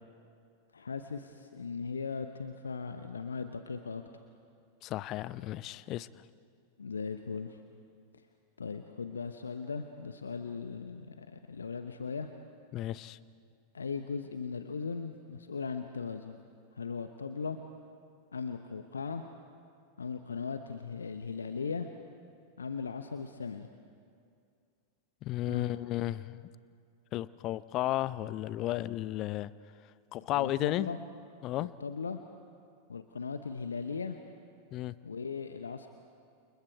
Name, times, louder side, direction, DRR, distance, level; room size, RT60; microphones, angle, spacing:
voice 1, 0.7-4.0 6.8-7.6 8.6-12.3 13.7-16.4 16.7-17.6 18.3-19.2 20.0-21.9 22.6-23.7 25.5-25.7 30.3-31.0 31.6-32.2 32.9-34.2 35.0-35.9, left 5 dB, 75° left, 8 dB, 0.9 m, -38 dB
voice 2, 4.8-6.1 12.7-13.2 25.2-26.5 27.1-29.5 30.1-30.9 31.4-31.7 34.7-34.9, left 15 dB, 35° left, 18 dB, 0.6 m, -33 dB
29.0 x 28.5 x 4.7 m, 2.3 s
figure-of-eight pair, 90°, 0 cm